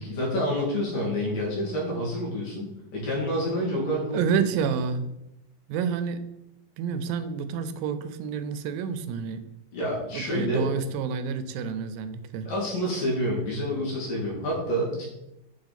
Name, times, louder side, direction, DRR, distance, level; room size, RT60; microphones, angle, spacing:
voice 1, 0.0-2.7 2.9-4.5 9.7-10.7 12.5-15.0, equal, 75° left, -4 dB, 3.8 m, -28 dB
voice 2, 4.1-5.1 5.7-6.2 6.8-9.4 10.1-12.5, right 6 dB, 90° right, 11 dB, 2.3 m, -29 dB
6.8 x 4.8 x 4.1 m, 0.89 s
omnidirectional pair, 3.9 m